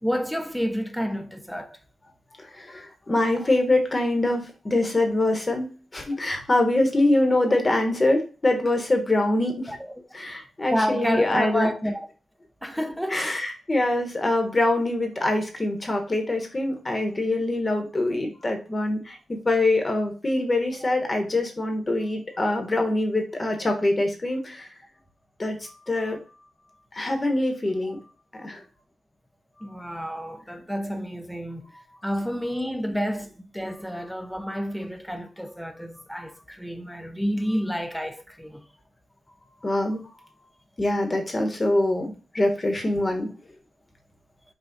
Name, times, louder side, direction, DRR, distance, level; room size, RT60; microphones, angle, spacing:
voice 1, 0.0-1.8 7.3-7.5 9.7-9.8 10.7-12.1 12.6-13.3 27.8-27.9 29.6-31.7 32.0-38.6, equal, ahead, 0.6 m, -29 dB
voice 2, 2.4-9.7 10.1-11.7 13.1-24.7 25.4-26.2 26.9-28.0 28.3-28.6 39.6-40.1 40.8-43.3, left 2 dB, 20° left, 1.0 m, -24 dB
5.7 x 2.3 x 3.9 m
wide cardioid pair, 130°, 0 cm